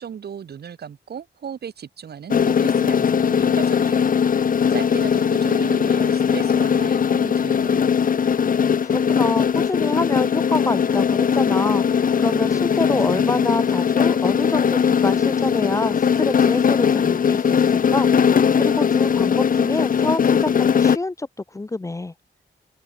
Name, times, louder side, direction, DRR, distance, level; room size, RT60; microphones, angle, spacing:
voice 1, 0.0-4.1 4.7-7.8, right 8 dB, 60° right, 1.9 m, -36 dB
sound 1, 2.3-21.0, left 7 dB, 50° left, 1.0 m, -19 dB
voice 2, 8.8-22.1, left 2 dB, 15° left, 0.8 m, -26 dB
open air
wide cardioid pair, 155°, 18 cm